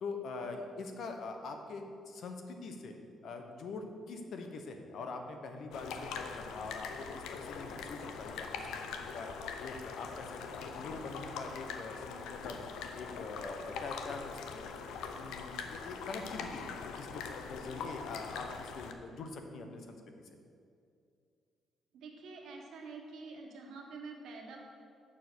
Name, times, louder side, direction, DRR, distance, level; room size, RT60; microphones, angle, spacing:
voice 1, 0.0-3.0 3.2-9.3 9.6-12.6 12.9-14.7 15.2-20.3, left 3 dB, 65° left, 5 dB, 1.0 m, -44 dB
sound 1, 5.7-18.9, left 5 dB, 90° left, 0.6 m, -42 dB
voice 2, 21.9-24.6, right 4 dB, 75° right, 1 dB, 1.5 m, -47 dB
7.4 x 6.5 x 6.2 m, 2.4 s
cardioid pair, 90°, 0 cm